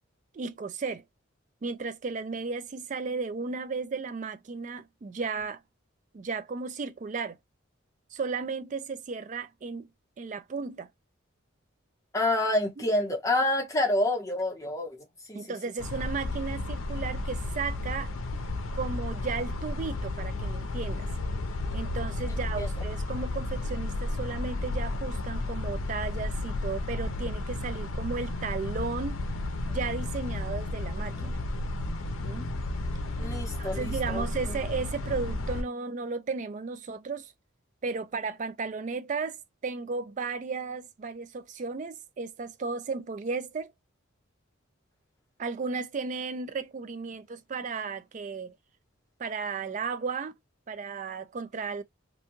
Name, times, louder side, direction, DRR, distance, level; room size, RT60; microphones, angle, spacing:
voice 1, 0.3-1.0 1.6-5.6 6.1-7.4 8.1-9.9 10.2-10.9 12.8-12.9 15.3-18.1 18.7-21.1 21.7-29.2 29.7-31.4 32.2-32.5 33.6-37.3 37.8-43.7 45.4-48.6 49.2-50.3 50.7-51.8, right 4 dB, 35° right, 0.3 m, -34 dB
voice 2, 12.1-15.0 15.3-15.4 22.6-22.7 33.2-34.6, left 1 dB, 15° left, 0.8 m, -28 dB
sound 1, 15.8-35.6, left 2 dB, 75° left, 0.6 m, -33 dB
2.6 x 2.2 x 2.9 m
head